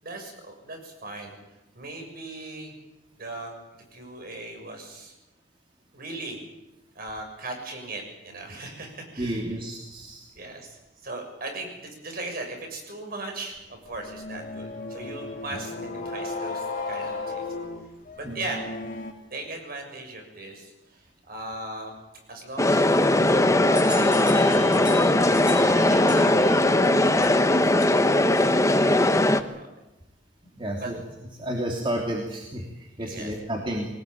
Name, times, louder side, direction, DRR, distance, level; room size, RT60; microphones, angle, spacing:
voice 1, 0.0-1.4 1.7-2.8 3.2-3.5 3.9-5.1 5.9-6.4 7.0-9.4 10.3-17.5 17.8-17.9 18.2-18.6 19.3-22.0 22.3-24.1 24.5-25.0 25.7-29.7 30.8-30.9 33.0-33.3, right 2 dB, 55° right, 3 dB, 7.1 m, -38 dB
voice 2, 9.2-10.2 18.2-18.4 30.5-31.0 31.3-33.9, right 1 dB, 30° right, -1 dB, 3.2 m, -31 dB
sound 1, 13.9-19.1, left 3 dB, 50° left, 3.5 m, -34 dB
sound 2, 22.6-29.4, left 1 dB, 15° left, 1.2 m, -19 dB
sound 3, 23.7-28.3, left 2 dB, 5° right, 7.3 m, -39 dB
23.5 x 19.5 x 8.8 m, 0.99 s
head